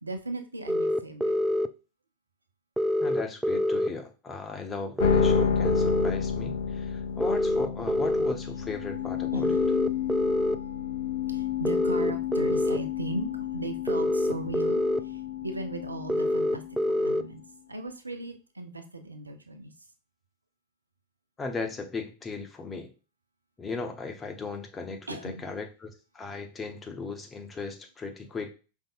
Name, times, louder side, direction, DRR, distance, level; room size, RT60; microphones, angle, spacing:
voice 1, 0.0-1.3 9.3-9.6 10.0-10.2 11.3-17.4 17.7-19.7 25.1-25.5, right 2 dB, 80° right, 7 dB, 0.6 m, -37 dB
sound 1, 0.7-1.7 2.8-3.9 5.0-6.1 7.2-8.3 9.4-10.6 11.6-12.8 13.9-15.0 16.1-17.2, left 1 dB, 5° right, 0.3 m, -25 dB
voice 2, 3.0-9.5 21.4-22.9 23.6-28.5, left 4 dB, 20° left, 4 dB, 0.9 m, -37 dB
sound 2, 5.0-17.3, left 7 dB, 60° left, 0.5 m, -31 dB
5.3 x 3.5 x 2.4 m, 0.32 s
figure-of-eight pair, 90°, 0 cm